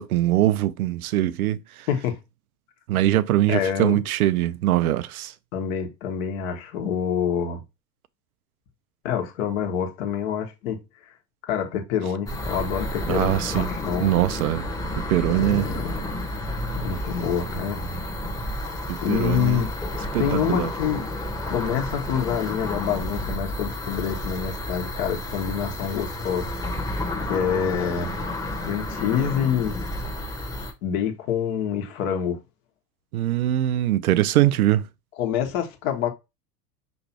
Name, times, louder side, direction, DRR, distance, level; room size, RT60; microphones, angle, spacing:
voice 1, 0.0-1.9 2.9-5.3 13.1-13.7 14.0-14.7 15.1-15.7 18.9-19.6 20.1-20.7 33.1-34.9, right 14 dB, 65° right, 0.5 m, -22 dB
voice 2, 1.9-2.2 3.5-4.0 5.5-7.6 9.0-10.8 11.4-14.1 15.3-15.9 16.7-17.8 19.0-19.7 20.2-21.0 21.5-26.5 27.2-28.1 28.6-29.8 30.8-32.4 35.2-36.1, left 8 dB, 55° left, 1.5 m, -26 dB
sound 1, 12.3-30.7, left 1 dB, 5° left, 1.1 m, -31 dB
5.8 x 3.1 x 2.9 m
figure-of-eight pair, 80°, 48 cm